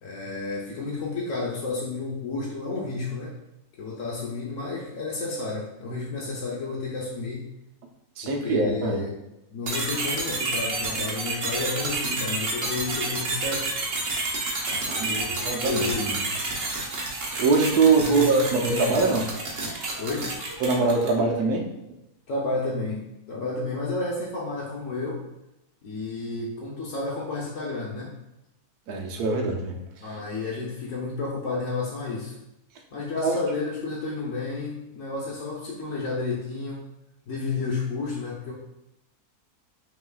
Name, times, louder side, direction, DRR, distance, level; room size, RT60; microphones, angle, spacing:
voice 1, 0.0-3.3 3.8-7.5 8.2-9.2 9.5-13.7 14.7-16.2 18.0-19.1 20.0-20.4 22.3-25.2 25.8-28.1 30.0-32.4 32.9-36.9 37.3-38.5, left 3 dB, 65° left, -5 dB, 1.0 m, -31 dB
voice 2, 8.2-9.0 14.9-16.2 17.4-19.3 20.6-21.7 28.9-29.8 33.2-33.4, right 4 dB, 80° right, 1 dB, 1.2 m, -23 dB
sound 1, 9.7-21.2, right 2 dB, 55° right, 1.3 m, -30 dB
5.7 x 3.2 x 2.3 m, 0.90 s
omnidirectional pair, 1.6 m